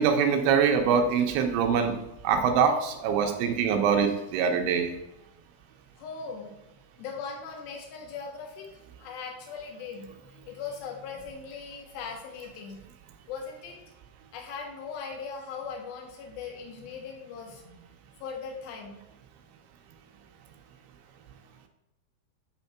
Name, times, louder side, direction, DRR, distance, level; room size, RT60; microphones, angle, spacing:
voice 1, 0.0-2.0 2.2-4.9, right 6 dB, 90° right, 5 dB, 3.0 m, -24 dB
voice 2, 6.0-6.5 7.0-8.7 9.0-12.8 13.3-13.8 14.3-17.8 18.2-19.0, left 5 dB, 65° left, 1 dB, 2.8 m, -39 dB
9.2 x 3.5 x 5.8 m, 0.90 s
omnidirectional pair, 5.2 m